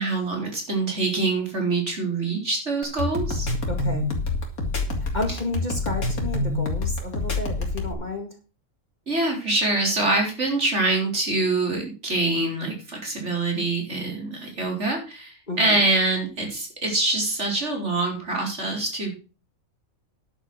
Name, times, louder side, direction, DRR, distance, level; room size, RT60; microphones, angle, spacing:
voice 1, 0.0-3.5 9.1-19.1, right 2 dB, 55° right, 1 dB, 4.4 m, -25 dB
sound 1, 2.8-7.9, left 2 dB, 80° left, 3.2 m, -26 dB
voice 2, 3.7-4.1 5.1-8.3 15.5-15.8, left 2 dB, 30° left, 4 dB, 2.2 m, -31 dB
11.0 x 8.0 x 6.0 m, 0.34 s
omnidirectional pair, 1.5 m